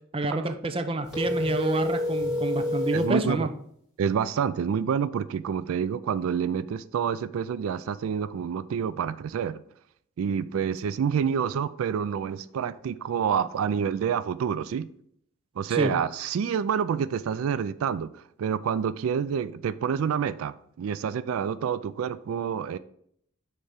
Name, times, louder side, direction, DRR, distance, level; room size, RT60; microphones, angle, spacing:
voice 1, 0.1-3.5 15.7-15.9, right 2 dB, 25° right, 0.5 m, -28 dB
sound 1, 1.1-3.2, left 1 dB, ahead, 2.7 m, -28 dB
voice 2, 2.9-3.5 4.0-9.6 10.2-14.9 15.6-22.8, right 7 dB, 85° right, 0.3 m, -28 dB
6.3 x 3.4 x 5.7 m
head